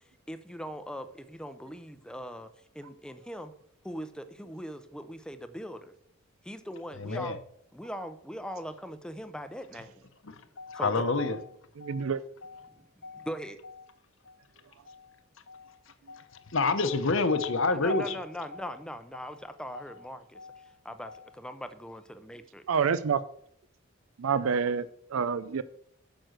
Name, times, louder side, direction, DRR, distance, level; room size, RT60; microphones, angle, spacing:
voice 1, 0.3-2.5 2.8-3.5 3.8-5.9 6.5-7.3 7.7-9.9 10.8-10.9 13.3-13.6 17.8-20.4 20.8-21.1 21.4-22.6, equal, 5° left, 10 dB, 0.6 m, -40 dB
voice 2, 6.9-7.4 10.2-11.5 11.8-12.1 12.4-12.8 13.0-13.3 13.6-13.9 14.3-14.4 14.9-15.2 15.5-15.8 16.1-18.8 19.1-19.5 19.7-20.1 20.3-20.8 21.0-21.3, left 3 dB, 65° left, 9 dB, 1.0 m, -31 dB
voice 3, 11.8-12.2 22.7-23.2 24.2-25.6, right 6 dB, 80° right, 16 dB, 0.5 m, -28 dB
9.1 x 6.2 x 6.5 m, 0.68 s
head